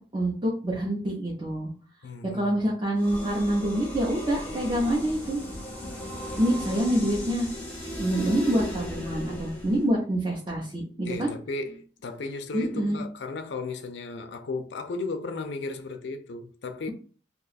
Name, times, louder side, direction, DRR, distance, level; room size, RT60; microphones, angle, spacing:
voice 1, 0.0-1.7 2.2-5.4 6.4-7.5 8.0-11.3 12.5-13.0, right 1 dB, 25° right, 0.6 m, -26 dB
voice 2, 2.0-2.6 11.0-16.9, left 3 dB, 70° left, 0.5 m, -35 dB
sound 1, 3.0-9.9, left 1 dB, 10° left, 0.8 m, -36 dB
sound 2, 3.1-3.6 3.9-4.4 4.7-5.2 5.5-6.0 6.3-6.8 7.1-7.6 7.9-8.0, equal, 60° right, 1.2 m, -44 dB
2.8 x 2.3 x 4.0 m
head